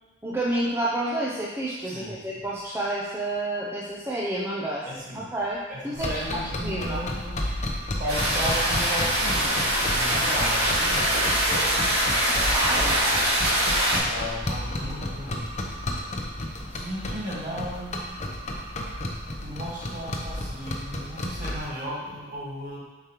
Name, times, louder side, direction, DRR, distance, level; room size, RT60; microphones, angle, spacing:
voice 1, 0.2-7.0 12.5-13.0, right 1 dB, 15° right, -5 dB, 0.5 m, -29 dB
voice 2, 1.8-2.4 4.8-5.3 5.7-7.4 8.0-11.1 13.8-15.5 16.5-18.1 19.4-22.8, equal, 40° right, -6 dB, 1.7 m, -35 dB
sound 1, 5.9-21.7, left 1 dB, 35° left, 0.7 m, -32 dB
sound 2, 8.1-14.0, equal, 55° right, 2.0 m, -23 dB
7.0 x 5.0 x 3.0 m, 1.2 s
head